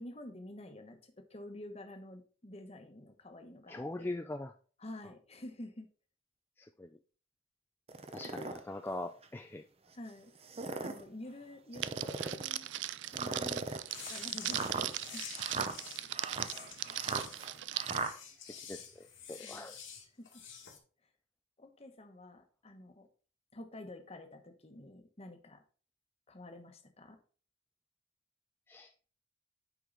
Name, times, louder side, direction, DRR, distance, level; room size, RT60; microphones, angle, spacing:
voice 1, 0.0-4.1 4.8-5.9 8.4-8.5 9.9-10.3 10.6-12.7 13.1-13.6 14.1-14.6 15.1-15.3 19.4-19.8 20.2-20.3 21.6-23.1 23.5-25.6 26.3-27.2, left 1 dB, 30° left, 5 dB, 1.1 m, -49 dB
voice 2, 3.7-4.5 6.6-7.0 8.1-9.6 18.7-19.8 28.7-28.9, left 2 dB, 10° left, 6 dB, 0.4 m, -42 dB
sound 1, 7.9-8.6 9.2-9.3 10.3-11.0 11.7-12.5 13.1-18.1, right 3 dB, 30° right, 0.7 m, -39 dB
Crackle, 11.8-18.0, right 14 dB, 65° right, 0.4 m, -39 dB
sound 2, 13.8-20.8, left 7 dB, 85° left, 2.1 m, -49 dB
9.0 x 4.8 x 3.9 m, 0.41 s
head